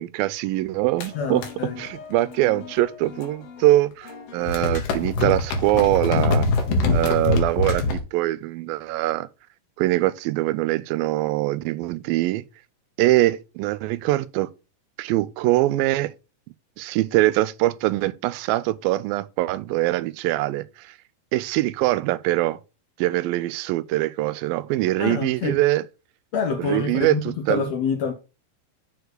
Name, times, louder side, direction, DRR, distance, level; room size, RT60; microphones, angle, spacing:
voice 1, 0.0-1.4 1.8-6.5 6.9-7.8 8.1-9.3 9.8-12.4 13.0-14.5 15.0-16.1 16.8-20.9 21.3-22.6 23.0-25.8 26.6-27.6, right 16 dB, 85° right, 2.3 m, -23 dB
sound 1, 1.0-3.7 3.9-8.0, left 3 dB, 90° left, 3.2 m, -25 dB
voice 2, 1.1-1.8 25.0-25.6 26.3-28.1, left 5 dB, 70° left, 1.7 m, -26 dB
6.8 x 4.7 x 6.4 m
omnidirectional pair, 4.1 m